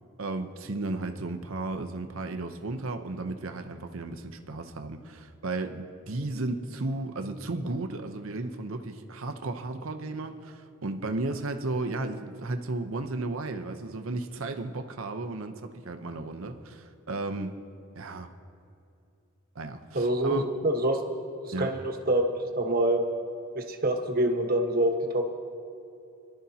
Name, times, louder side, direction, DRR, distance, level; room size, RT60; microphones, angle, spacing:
voice 1, 0.2-17.5 18.0-18.3 19.6-20.4 21.5-21.7, right 2 dB, 65° right, 6 dB, 0.8 m, -34 dB
voice 2, 19.9-21.0 21.4-23.0 23.5-25.2, right 1 dB, 45° right, 3 dB, 1.2 m, -26 dB
23.5 x 12.0 x 2.8 m, 2.6 s
head